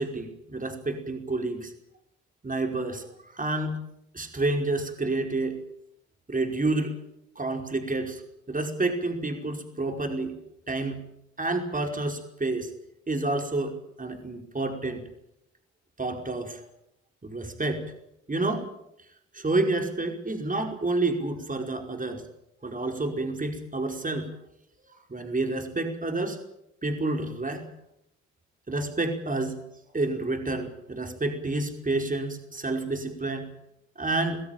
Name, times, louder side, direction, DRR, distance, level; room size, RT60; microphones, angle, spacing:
voice 1, 0.0-1.7 2.4-3.8 4.1-5.6 6.3-6.9 7.3-8.2 8.5-10.3 10.7-11.0 11.4-12.7 13.1-15.0 16.0-16.6 17.2-17.9 18.3-18.7 19.3-22.2 22.6-24.3 25.1-26.4 26.8-27.6 28.7-29.6 29.9-33.5 33.9-34.4, right 2 dB, 25° right, 4 dB, 5.1 m, -29 dB
25.0 x 16.5 x 9.1 m, 0.79 s
supercardioid pair, 60°, 31 cm